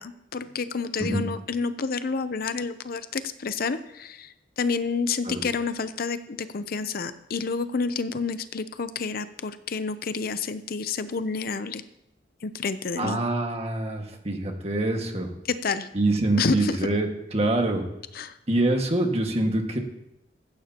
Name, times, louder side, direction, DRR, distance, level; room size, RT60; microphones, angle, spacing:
voice 1, 0.0-11.8 12.4-13.2 15.5-15.9 16.4-16.8 18.1-18.4, left 4 dB, 55° left, 12 dB, 0.6 m, -29 dB
voice 2, 13.0-15.3 15.9-17.8 18.5-19.8, right 2 dB, 35° right, 3 dB, 1.8 m, -25 dB
16.5 x 14.5 x 2.9 m, 0.84 s
head